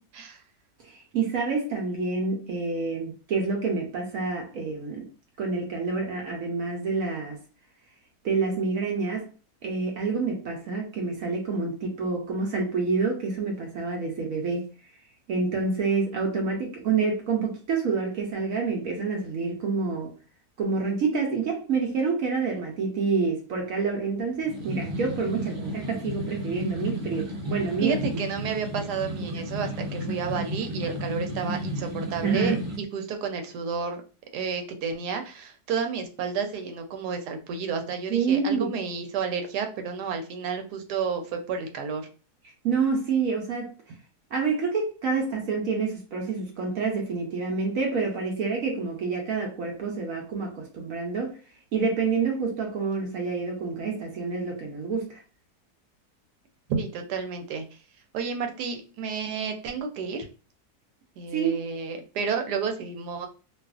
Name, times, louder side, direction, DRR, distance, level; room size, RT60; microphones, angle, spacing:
voice 1, 0.8-5.1 5.4-7.4 8.2-9.2 9.6-14.7 15.3-20.1 20.6-28.0 32.2-32.6 38.1-38.7 42.6-43.7 44.3-51.3 51.7-55.2 61.3-61.5, right 4 dB, 65° right, 0.9 m, -28 dB
sound 1, 24.4-32.8, equal, 40° right, 0.7 m, -33 dB
voice 2, 27.8-34.0 34.3-42.1 56.7-57.6 58.1-60.3 61.2-63.3, right 6 dB, 85° right, 1.1 m, -31 dB
2.6 x 2.4 x 2.3 m
omnidirectional pair, 1.7 m